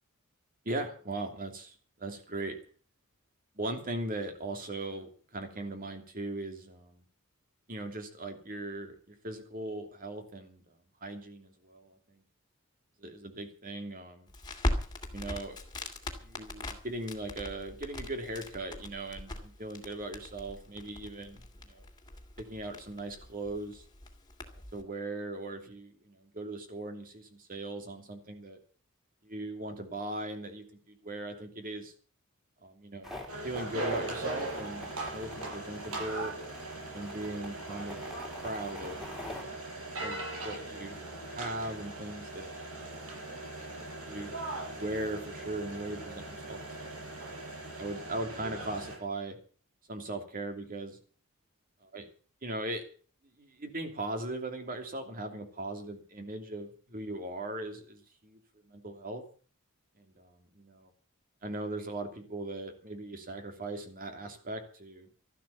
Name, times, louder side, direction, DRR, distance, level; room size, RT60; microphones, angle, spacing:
voice 1, 0.6-1.7 2.0-2.6 3.6-7.0 7.7-10.6 11.0-12.2 13.0-14.3 15.1-15.9 16.2-21.9 22.5-23.8 24.7-28.6 29.2-31.9 32.6-33.1 33.4-36.3 36.9-39.0 40.0-42.5 44.0-44.3 44.7-47.3 47.8-49.4 49.9-51.0 51.9-52.0 52.4-52.8 53.4-58.4 58.6-59.2 60.0-60.9 61.4-65.1, right 2 dB, 40° right, 6 dB, 2.9 m, -39 dB
Crackle, 14.3-24.8, left 1 dB, 20° left, 2.5 m, -40 dB
sound 1, 33.0-39.4, left 1 dB, ahead, 3.6 m, -46 dB
sound 2, 33.3-49.0, right 2 dB, 85° right, 7.1 m, -40 dB
13.5 x 12.0 x 7.0 m, 0.42 s
head